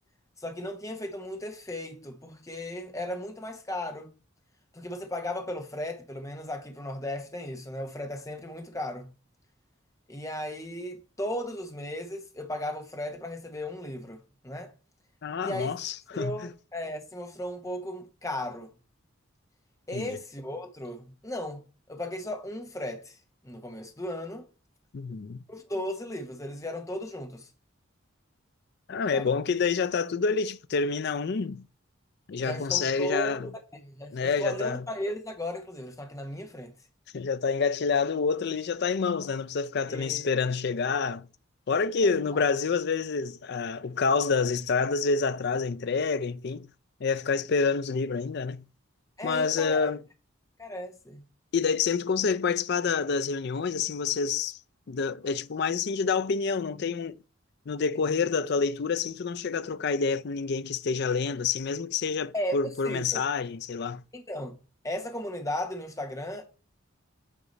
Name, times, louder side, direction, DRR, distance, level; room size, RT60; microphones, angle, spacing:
voice 1, 0.4-4.1 4.7-9.1 10.1-14.7 15.4-15.7 16.1-18.7 19.9-23.2 23.4-24.5 25.5-27.5 29.1-29.3 32.4-33.5 33.8-36.7 39.9-40.2 42.0-42.4 49.2-49.9 50.6-51.3 62.3-63.2 64.1-64.6 64.8-66.5, left 1 dB, 15° left, 1.1 m, -36 dB
voice 2, 15.2-16.5 19.9-20.2 24.9-25.4 28.9-31.6 32.3-33.5 34.1-34.8 37.1-41.3 41.7-46.7 47.0-48.6 49.2-50.0 51.5-54.6 54.9-57.2 57.7-64.0, left 5 dB, 55° left, 0.4 m, -28 dB
8.4 x 4.8 x 4.0 m
head